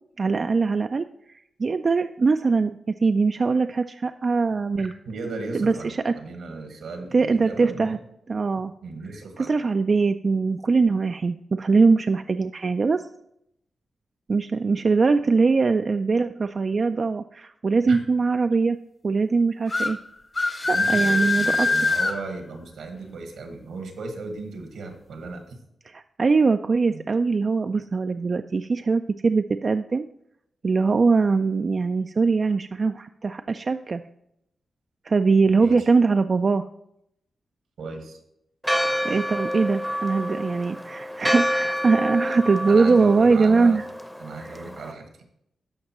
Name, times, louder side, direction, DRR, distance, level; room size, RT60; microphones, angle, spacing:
voice 1, 0.2-4.9 5.5-6.1 7.1-8.0 8.3-8.7 9.4-13.0 14.3-18.8 19.0-20.0 20.7-21.7 25.8-30.1 30.6-34.0 35.0-36.6 39.0-43.8 44.4-44.6, right 4 dB, 50° right, 8 dB, 0.3 m, -22 dB
voice 2, 4.8-8.0 8.8-9.5 17.9-18.0 20.7-25.5 26.9-27.0 35.6-35.9 37.8-38.2 42.7-43.8 44.2-45.1, right 3 dB, 85° right, 4 dB, 1.4 m, -36 dB
sound 1, 19.7-19.9 20.4-22.1, left 3 dB, 50° left, 1.6 m, -22 dB
Church bell, 38.6-44.9, equal, ahead, 0.7 m, -28 dB
13.0 x 5.2 x 3.0 m, 0.78 s
cardioid pair, 50°, 0 cm